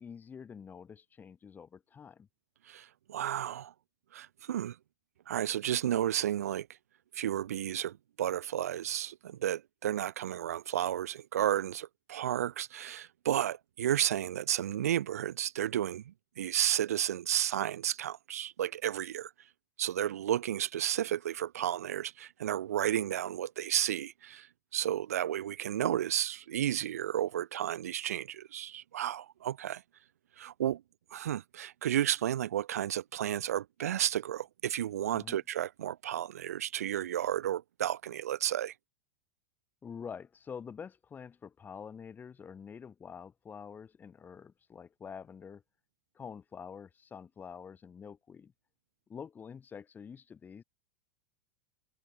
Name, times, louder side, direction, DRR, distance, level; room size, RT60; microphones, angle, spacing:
voice 1, 0.0-2.3 35.1-35.4 39.8-45.6 46.1-48.5 49.1-50.6, left 6 dB, 25° left, 3.9 m, -47 dB
voice 2, 2.7-3.7 4.1-4.8 5.3-6.7 7.1-19.3 19.8-24.5 24.7-29.8 30.4-30.8 31.1-38.7, right 11 dB, 85° right, 1.2 m, -32 dB
hypercardioid pair, 110°, 8 cm